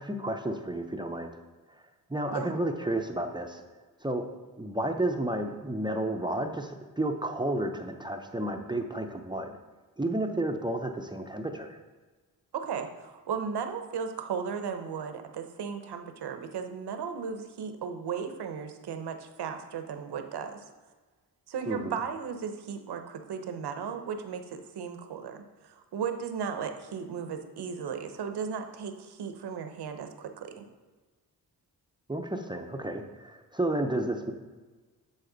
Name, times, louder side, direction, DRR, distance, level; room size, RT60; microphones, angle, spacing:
voice 1, 0.0-1.4 2.1-3.6 4.0-4.3 4.6-9.6 10.0-11.8 21.7-22.0 32.1-34.3, right 1 dB, 10° right, 4 dB, 0.5 m, -31 dB
voice 2, 12.5-20.6 21.5-30.6, right 6 dB, 80° right, 7 dB, 0.8 m, -36 dB
9.9 x 4.2 x 3.9 m, 1.3 s
cardioid pair, 90°, 39 cm